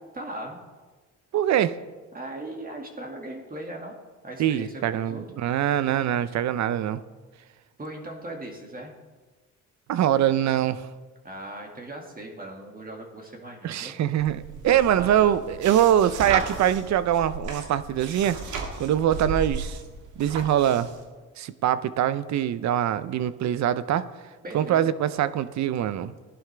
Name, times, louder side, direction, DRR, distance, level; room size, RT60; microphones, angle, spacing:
voice 1, 0.1-0.6 2.1-4.0 4.2-5.2 7.8-8.9 11.2-14.0 14.7-15.4 24.4-24.9, right 1 dB, 30° right, 1 dB, 2.2 m, -38 dB
voice 2, 1.3-1.8 4.4-7.0 9.9-10.9 13.6-18.4 18.8-19.8 20.2-20.9 21.4-24.1 24.5-26.2, right 10 dB, 65° right, 15 dB, 0.6 m, -23 dB
sound 1, 14.2-21.0, right 4 dB, 85° right, 1.7 m, -35 dB
15.5 x 11.0 x 3.4 m, 1.3 s
cardioid pair, 90°, 30 cm